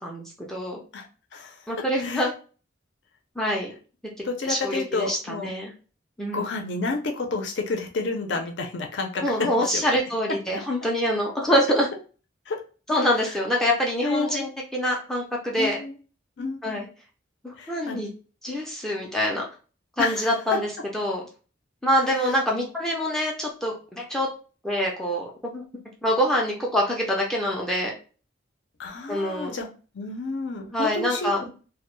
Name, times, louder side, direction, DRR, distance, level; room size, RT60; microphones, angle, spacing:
voice 1, 0.0-0.8 1.7-2.3 3.4-3.7 4.4-5.7 6.2-6.4 9.2-11.9 12.9-15.8 16.6-16.9 17.4-18.1 18.4-19.4 20.0-21.2 21.8-24.3 24.6-25.6 26.0-27.9 29.1-29.6 30.7-31.4, equal, 5° left, -2 dB, 0.4 m, -25 dB
voice 2, 4.2-5.5 6.3-9.2 9.7-9.8 12.5-12.6 14.0-14.5 15.6-15.9 16.4-16.8 17.6-18.0 20.0-20.2 28.8-29.7 29.9-31.5, left 3 dB, 70° left, 3 dB, 0.5 m, -30 dB
2.1 x 2.0 x 3.0 m, 0.37 s
head